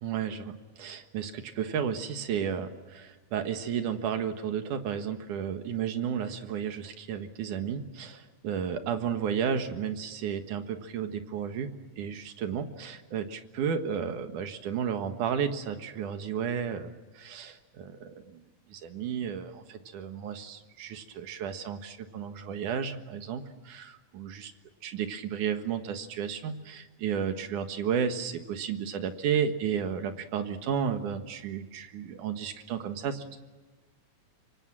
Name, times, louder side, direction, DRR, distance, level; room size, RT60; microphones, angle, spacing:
voice 1, 0.0-11.7 12.0-24.5 24.8-33.4, right 7 dB, 80° right, 7 dB, 3.1 m, -33 dB
26.0 x 25.0 x 7.5 m, 1.3 s
omnidirectional pair, 3.5 m